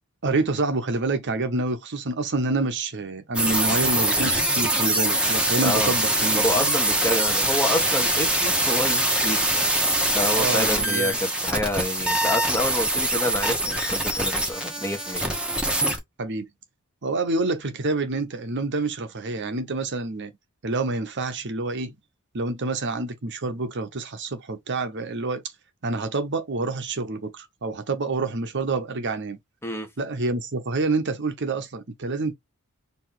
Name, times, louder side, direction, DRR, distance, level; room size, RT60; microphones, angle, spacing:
voice 1, 0.2-6.8 10.3-11.2 16.2-16.5 17.0-20.3 20.6-22.0 22.3-25.4 25.8-29.4 30.0-32.3, right 3 dB, 55° right, 0.9 m, -27 dB
sound 1, 3.3-16.0, right 1 dB, 5° right, 1.3 m, -23 dB
voice 2, 5.6-5.9 6.3-9.8 10.1-15.2 29.6-29.9, left 1 dB, 10° left, 1.4 m, -28 dB
4.7 x 2.9 x 3.7 m
head